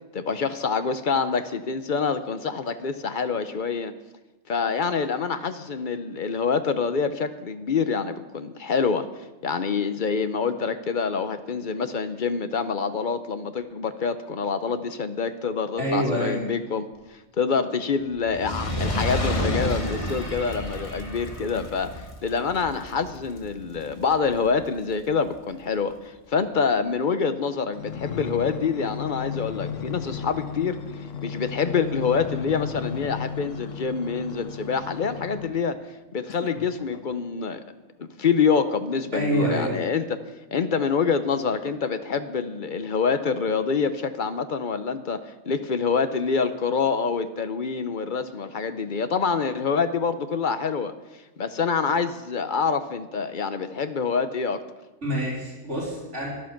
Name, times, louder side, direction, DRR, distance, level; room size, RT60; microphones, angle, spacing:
voice 1, 0.1-3.9 4.5-9.1 9.4-16.9 17.4-30.8 31.2-35.8 36.1-37.6 38.0-40.2 40.5-45.2 45.5-50.9 51.4-54.6, left 5 dB, 45° left, 10 dB, 0.8 m, -26 dB
voice 2, 15.8-16.4 39.1-39.9 55.0-56.3, right 1 dB, 65° right, -5 dB, 4.0 m, -26 dB
Fire, 18.2-24.7 25.4-25.5, equal, 25° left, 1.3 m, -30 dB
sound 1, 27.7-35.7 36.3-37.6 38.2-38.3, left 7 dB, 75° left, 1.2 m, -35 dB
13.0 x 11.5 x 5.9 m, 1.1 s
omnidirectional pair, 1.3 m